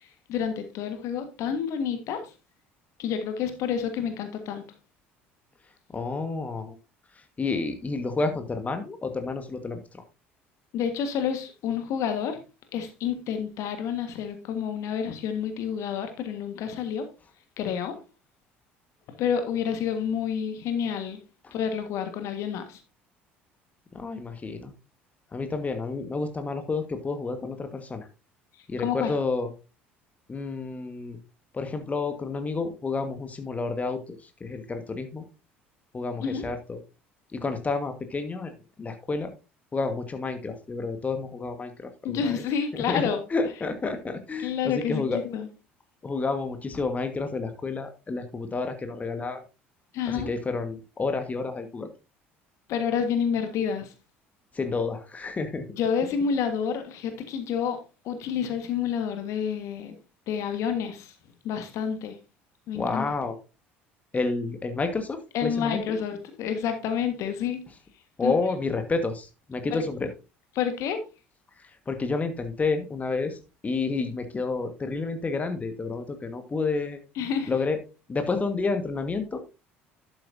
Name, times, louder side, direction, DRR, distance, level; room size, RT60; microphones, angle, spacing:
voice 1, 0.3-2.2 3.0-4.6 10.7-12.4 12.7-17.0 17.6-17.9 19.2-21.2 21.5-22.8 28.8-29.1 36.2-36.4 42.0-43.2 44.4-45.5 49.9-50.3 52.7-53.9 55.8-57.8 58.0-59.9 60.3-61.1 61.4-62.2 62.7-63.0 65.3-67.6 68.2-68.3 69.7-69.8 70.5-71.0 77.2-77.5, left 7 dB, 55° left, 1.6 m, -29 dB
voice 2, 5.9-6.7 7.4-10.0 21.4-21.5 23.9-24.7 25.3-28.1 28.7-29.5 30.3-31.2 31.5-34.0 34.4-35.2 35.9-36.8 37.3-39.3 39.7-42.4 42.7-43.0 43.3-45.2 46.0-49.4 50.1-51.9 54.5-55.7 62.7-63.4 64.1-66.0 68.2-70.1 71.9-73.4 73.6-77.0 77.5-77.8 78.1-79.4, left 3 dB, 25° left, 1.6 m, -30 dB
11.5 x 8.0 x 2.7 m
figure-of-eight pair, 60°, 6 cm